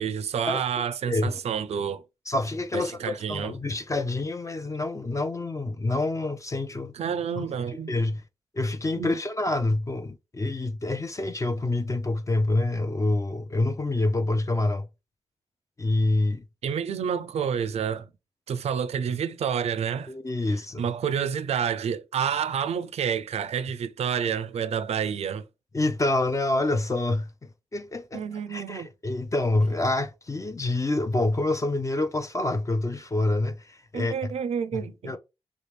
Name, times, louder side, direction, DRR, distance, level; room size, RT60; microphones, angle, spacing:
voice 1, 0.0-2.0 2.7-3.5 6.9-7.9 9.0-9.2 16.6-18.1 18.5-20.1 20.8-25.4 28.1-28.9 33.9-35.2, right 7 dB, 85° right, 0.4 m, -29 dB
voice 2, 1.1-1.4 2.3-6.9 7.4-7.5 7.9-8.2 8.5-14.9 15.8-16.4 20.1-20.8 25.7-27.3 27.7-34.3 34.7-35.2, left 2 dB, 30° left, 0.4 m, -27 dB
3.2 x 2.5 x 3.2 m
cardioid pair, 55°, 11 cm